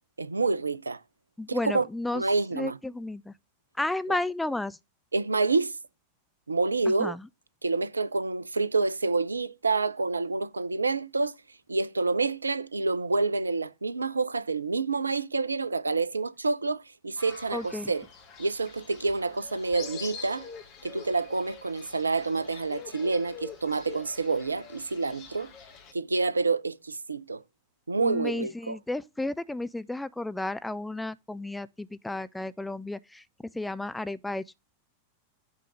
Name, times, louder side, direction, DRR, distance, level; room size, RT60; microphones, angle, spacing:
voice 1, 0.2-1.0 1.5-1.8 2.1-2.8 4.1-4.2 5.1-5.8 6.5-7.1 7.6-11.3 11.7-18.1 18.4-20.5 20.8-25.5 25.9-27.4 27.9-28.8, right 3 dB, 80° right, 0.5 m, -28 dB
voice 2, 1.4-2.2 2.5-3.3 3.8-4.8 6.9-7.2 17.5-17.9 28.0-33.2 33.5-34.6, left 2 dB, 5° left, 0.4 m, -33 dB
Fowl, 17.2-25.9, left 6 dB, 40° left, 2.0 m, -45 dB
8.3 x 3.8 x 6.0 m
figure-of-eight pair, 90°, 0 cm